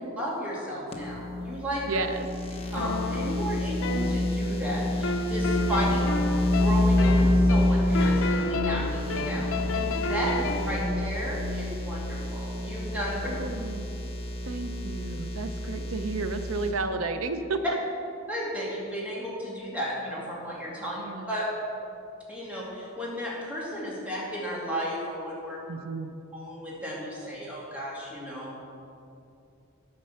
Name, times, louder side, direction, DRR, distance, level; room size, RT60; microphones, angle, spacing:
voice 1, 0.2-1.8 2.7-6.0 6.6-9.5 10.0-10.3 10.7-13.3 18.3-21.0 21.3-21.5 22.3-25.6 26.3-28.6, equal, 5° right, -6 dB, 2.3 m, -34 dB
sound 1, 0.9-16.7, left 1 dB, 30° left, 1.0 m, -28 dB
voice 2, 1.9-2.3 10.2-10.4 13.3-13.9 14.4-17.8 21.0-21.3 25.7-26.1, right 3 dB, 70° right, 8 dB, 0.7 m, -32 dB
sound 2, 2.8-4.6 5.0-10.8, left 2 dB, 65° left, 0.7 m, -31 dB
9.7 x 5.5 x 6.9 m, 2.6 s
head